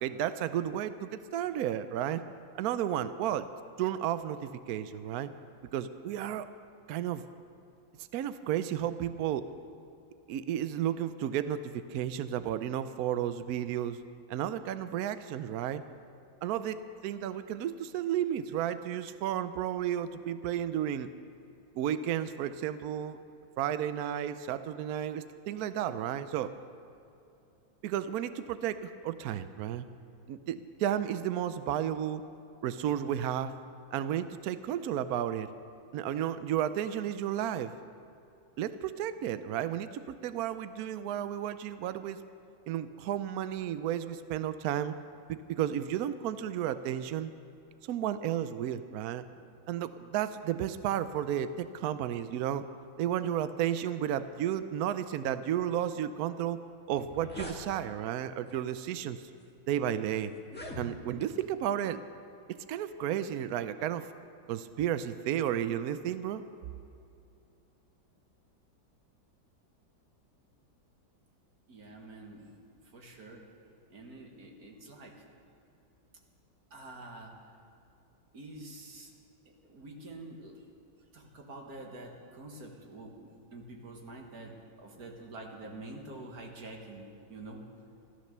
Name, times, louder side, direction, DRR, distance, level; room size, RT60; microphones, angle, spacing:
voice 1, 0.0-2.2 2.5-3.5 3.8-5.3 5.7-6.5 6.9-7.2 8.1-9.5 10.3-14.0 14.3-15.8 16.4-21.1 21.8-23.2 23.6-26.5 27.8-29.8 30.3-32.2 32.6-33.5 33.9-35.5 35.9-37.7 38.6-42.2 42.7-44.9 45.3-47.3 47.8-49.2 49.7-52.6 53.0-56.6 56.9-59.2 59.7-60.3 60.8-62.0 62.7-64.1 64.5-66.4, right 10 dB, 80° right, 12 dB, 0.8 m, -32 dB
sound 1, 56.9-57.6 58.5-58.7 59.4-59.5 60.4-61.3, left 1 dB, 5° left, 1.4 m, -43 dB
voice 2, 71.7-72.5 72.9-73.4 73.9-75.3 76.7-77.5 78.3-79.1 79.6-80.5 81.1-87.6, right 2 dB, 50° right, 1 dB, 2.1 m, -47 dB
14.0 x 13.5 x 6.7 m, 2.6 s
omnidirectional pair, 2.2 m